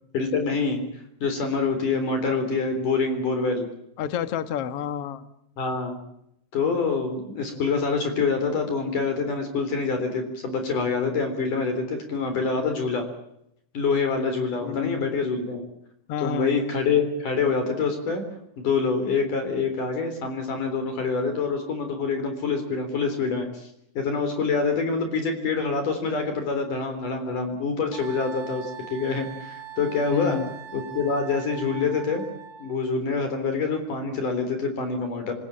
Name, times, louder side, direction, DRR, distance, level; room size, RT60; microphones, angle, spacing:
voice 1, 0.1-0.8 1.2-3.7 5.6-6.0 6.5-13.1 13.7-15.6 16.2-18.2 18.6-23.7 23.9-30.4 30.7-32.2 32.6-35.3, left 4 dB, 50° left, 7 dB, 4.9 m, -26 dB
voice 2, 4.0-5.2 14.6-15.1 16.1-16.5 30.1-30.5, left 8 dB, 70° left, 12 dB, 1.4 m, -29 dB
Wind instrument woodwind instrument, 27.9-32.8, right 9 dB, 75° right, 4.3 m, -41 dB
28.0 x 16.5 x 8.8 m, 0.76 s
omnidirectional pair, 5.0 m